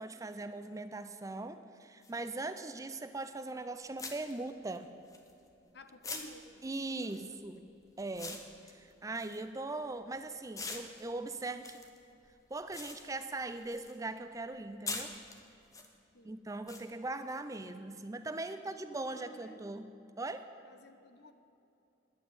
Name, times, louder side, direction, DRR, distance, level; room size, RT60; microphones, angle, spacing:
voice 1, 0.0-4.9 6.6-7.7 8.0-11.9 12.5-15.2 16.2-19.9 20.2-20.5, right 2 dB, 20° right, 10 dB, 0.4 m, -40 dB
sound 1, 2.0-2.1 3.3-3.5 4.0-5.6 6.0-10.1 10.5-14.0 14.3-15.9 16.7-16.8, left 3 dB, 20° left, 0.9 m, -45 dB
voice 2, 5.7-7.4 9.5-9.8 16.1-16.3 18.5-19.7 20.7-21.3, left 1 dB, 60° left, 9 dB, 0.8 m, -54 dB
11.0 x 7.3 x 9.4 m, 2.9 s
head